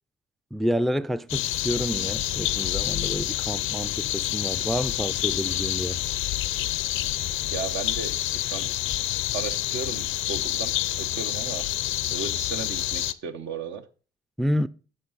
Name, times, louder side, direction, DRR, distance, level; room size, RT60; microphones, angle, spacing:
voice 1, 0.5-6.0 14.4-14.7, equal, ahead, 0.4 m, -29 dB
sound 1, 1.3-13.1, left 14 dB, 85° left, 0.5 m, -28 dB
voice 2, 7.5-8.7 9.3-11.7 12.1-13.9, right 5 dB, 75° right, 1.1 m, -35 dB
11.0 x 6.7 x 4.0 m
cardioid pair, 90°, 20 cm